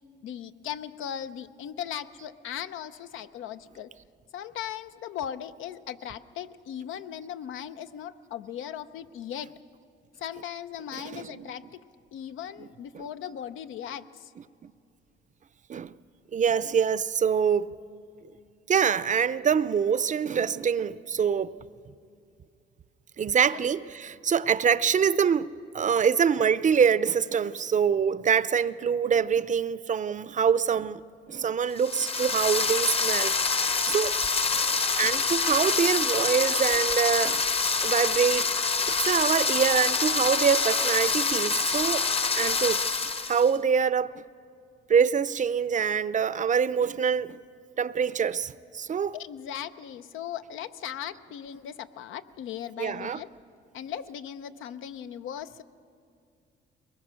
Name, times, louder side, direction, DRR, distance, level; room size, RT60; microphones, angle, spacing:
voice 1, 0.2-3.9 4.3-9.5 10.2-11.8 12.1-14.3 23.5-23.6 49.1-53.3 53.7-55.6, left 9 dB, 85° left, 0.7 m, -38 dB
voice 2, 10.9-11.4 12.6-12.7 12.9-13.0 14.6-14.7 15.7-15.9 16.3-17.8 18.7-21.5 23.2-31.0 31.3-34.1 35.0-37.4 37.8-38.5 39.0-42.1 42.3-44.1 44.9-47.4 47.8-49.1 52.8-53.2, right 7 dB, 40° right, 0.6 m, -25 dB
sound 1, 31.8-43.5, left 4 dB, 30° left, 0.9 m, -26 dB
23.0 x 21.0 x 6.3 m
cardioid pair, 90°, 20 cm